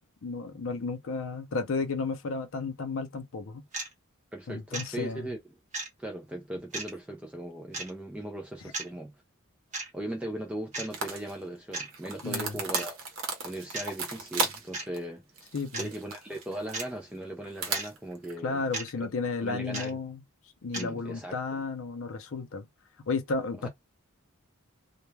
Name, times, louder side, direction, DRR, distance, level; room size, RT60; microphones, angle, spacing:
voice 1, 0.2-3.6 4.5-5.3 12.2-12.6 15.5-15.9 18.4-20.2 20.6-22.7 23.1-23.7, left 4 dB, 65° left, 0.6 m, -33 dB
sound 1, 3.7-3.9 4.7-4.9 5.7-5.9 6.7-6.9 7.7-7.9 8.7-8.9 9.7-9.9 10.7-10.9 11.7-11.9 12.7-12.8 13.7-13.9 14.7-14.9 15.7-15.9 16.7-16.9 17.7-17.9 18.7-18.9 19.7-19.9 20.7-20.9, right 2 dB, 35° right, 1.0 m, -35 dB
voice 2, 4.3-5.6 6.0-9.1 9.9-13.0 13.4-15.2 15.8-18.7 19.0-19.1 19.4-20.0 20.7-21.6 23.6-23.7, right 1 dB, 5° right, 0.3 m, -38 dB
sound 2, 10.9-11.3 11.9-14.7 14.9-15.0 15.4-16.9 17.4-18.3, right 4 dB, 65° right, 0.8 m, -35 dB
2.2 x 2.2 x 3.1 m
head